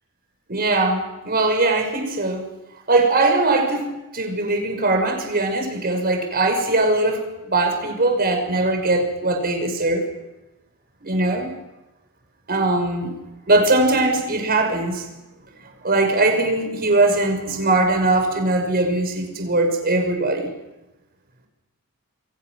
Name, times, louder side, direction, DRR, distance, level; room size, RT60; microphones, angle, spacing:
voice 1, 0.5-2.4 2.9-10.0 11.0-11.5 12.5-13.2 13.5-15.0 15.8-20.5, right 2 dB, 45° right, 5 dB, 5.7 m, -20 dB
28.0 x 23.0 x 6.3 m, 1.0 s
head